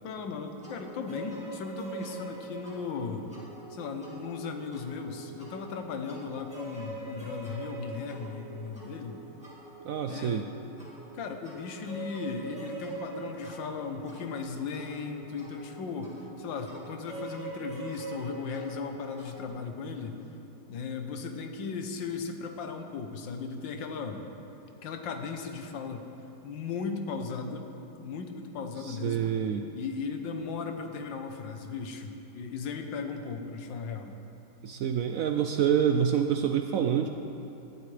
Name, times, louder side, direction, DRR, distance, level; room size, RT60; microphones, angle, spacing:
voice 1, 0.0-3.3 3.7-9.2 10.1-10.5 11.1-20.2 20.7-24.2 24.8-26.1 26.4-27.7 28.0-29.3 29.7-34.1, left 5 dB, 80° left, 5 dB, 1.6 m, -37 dB
sound 1, 0.6-19.5, right 3 dB, 5° right, 2.2 m, -44 dB
voice 2, 9.8-10.4 28.8-29.6 34.6-37.1, right 8 dB, 80° right, 5 dB, 0.7 m, -27 dB
17.0 x 12.0 x 3.3 m, 2.9 s
omnidirectional pair, 2.0 m